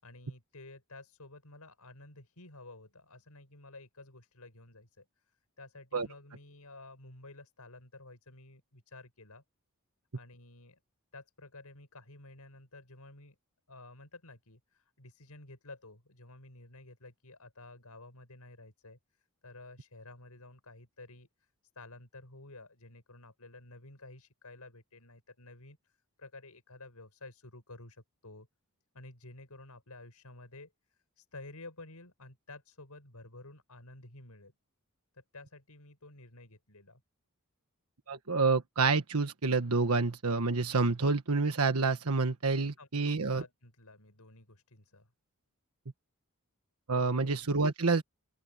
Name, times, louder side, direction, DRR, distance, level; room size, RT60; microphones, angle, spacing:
voice 1, 0.0-9.4 10.1-10.8 11.1-13.4 13.7-28.5 28.9-34.5 35.1-37.0 42.8-45.1 47.0-47.4, left 2 dB, 85° left, 5.7 m, -52 dB
voice 2, 38.1-43.4 46.9-48.0, right 4 dB, 75° right, 1.4 m, -28 dB
open air
head